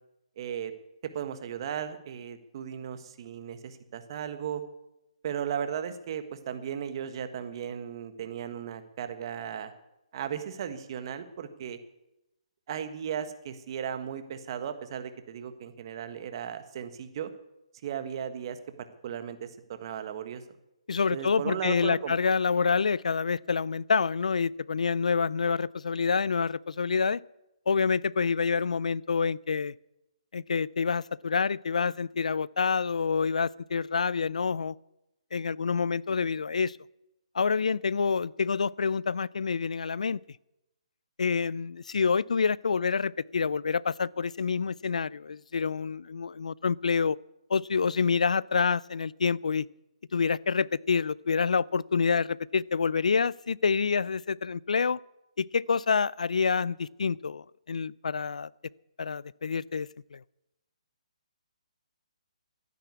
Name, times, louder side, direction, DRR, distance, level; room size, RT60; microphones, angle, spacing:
voice 1, 0.4-0.7 1.0-4.6 5.2-9.7 10.1-11.8 12.7-17.3 17.8-20.4 21.1-22.1, right 8 dB, 40° right, 9 dB, 1.4 m, -36 dB
voice 2, 20.9-27.2 27.7-29.7 30.3-34.8 35.3-36.8 37.3-40.2 41.2-47.2 47.5-49.6 50.1-55.0 55.4-58.5 59.0-60.2, left 5 dB, 80° left, 24 dB, 0.4 m, -27 dB
13.0 x 10.0 x 8.3 m, 0.91 s
hypercardioid pair, 155°, 4 cm